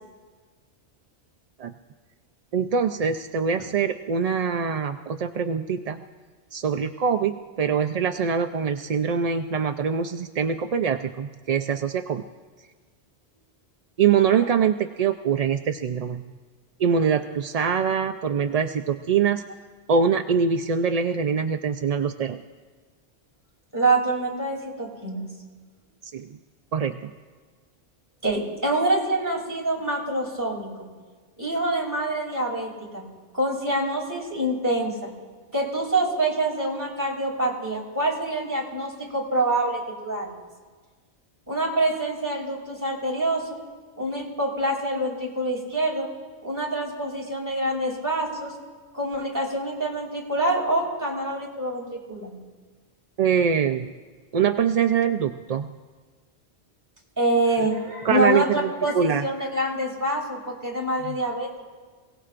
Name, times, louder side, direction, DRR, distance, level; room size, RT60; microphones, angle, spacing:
voice 1, 2.5-6.0 6.5-12.2 14.0-16.2 16.8-19.4 19.9-22.4 26.0-26.4 26.7-27.1 53.2-53.9 54.3-55.7 57.6-57.7 58.0-59.2 61.0-61.2, right 7 dB, 55° right, 7 dB, 0.4 m, -24 dB
voice 2, 23.7-25.2 28.2-30.9 31.4-33.0 33.3-35.1 35.5-40.3 41.5-43.6 44.0-46.1 46.4-48.5 48.9-52.4 57.2-61.5, right 1 dB, 15° right, -2 dB, 2.9 m, -26 dB
27.5 x 17.5 x 2.5 m, 1.5 s
omnidirectional pair, 1.1 m